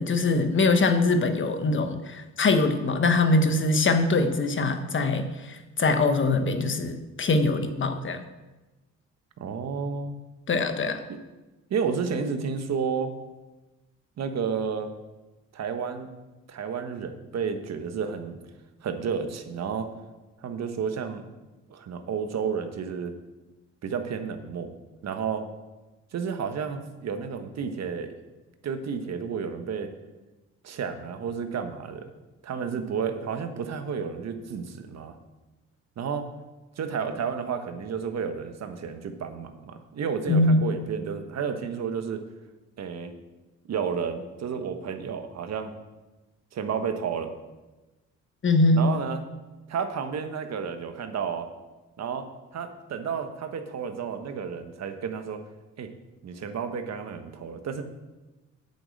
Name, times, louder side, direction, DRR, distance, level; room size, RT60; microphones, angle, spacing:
voice 1, 0.0-8.2 10.5-11.0 40.3-40.6 48.4-48.9, left 3 dB, 40° left, 7 dB, 1.2 m, -23 dB
voice 2, 9.4-10.2 11.1-11.2 11.7-13.1 14.2-14.9 15.5-16.1 16.5-18.4 18.8-19.9 20.4-21.2 21.7-23.1 23.8-24.7 25.0-25.4 26.1-28.1 28.6-29.9 30.6-32.1 32.4-35.2 36.0-36.3 36.8-42.2 42.8-43.1 43.6-45.7 46.5-47.3 48.7-49.2 49.7-51.5 52.0-52.3 52.5-55.4 55.8-55.9 56.2-57.8, right 6 dB, 60° right, 7 dB, 1.2 m, -31 dB
8.7 x 6.6 x 7.7 m, 1.1 s
cardioid pair, 90°, 30 cm